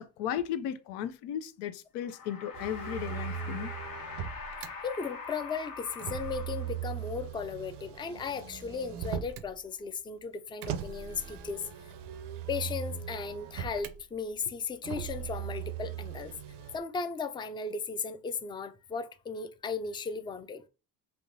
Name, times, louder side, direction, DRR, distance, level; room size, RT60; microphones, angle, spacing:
voice 1, 0.0-3.7, left 10 dB, 90° left, 0.5 m, -35 dB
sound 1, 2.0-7.1, left 5 dB, 55° left, 1.0 m, -43 dB
Motor vehicle (road), 2.5-4.7 5.9-9.5 10.6-14.0 14.8-16.8, right 9 dB, 75° right, 0.6 m, -39 dB
voice 2, 4.8-11.7 12.5-16.3 16.7-20.7, left 5 dB, 15° left, 0.3 m, -36 dB
3.4 x 2.8 x 2.6 m
supercardioid pair, 80°, 40 cm